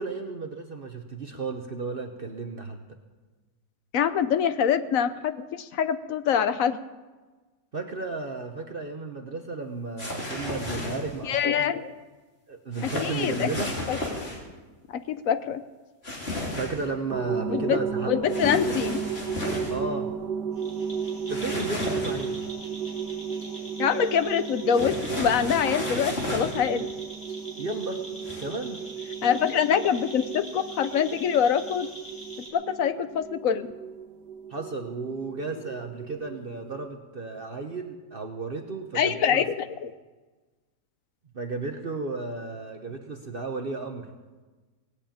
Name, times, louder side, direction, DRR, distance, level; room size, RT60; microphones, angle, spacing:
voice 1, 0.0-2.8 7.7-11.7 12.5-13.7 16.6-18.2 19.7-20.1 21.3-22.3 27.6-28.0 28.4-28.8 34.5-39.4 41.3-44.1, right 3 dB, 40° right, 4 dB, 1.0 m, -33 dB
voice 2, 3.9-6.8 11.2-11.9 12.8-13.5 13.9-14.0 14.9-15.6 17.5-17.8 18.1-19.0 23.8-26.9 29.2-31.9 32.5-33.7 38.9-39.9, left 8 dB, 65° left, 12 dB, 1.0 m, -25 dB
sound 1, 10.0-11.2 12.7-14.4 16.0-16.8 18.3-19.7 21.3-22.4 24.7-26.6 28.2-28.4, left 1 dB, 40° left, 3.4 m, -33 dB
sound 2, 17.1-36.9, right 7 dB, 85° right, 1.3 m, -34 dB
sound 3, 20.6-32.5, right 1 dB, 5° left, 4.4 m, -44 dB
18.0 x 8.6 x 8.7 m, 1.3 s
omnidirectional pair, 1.8 m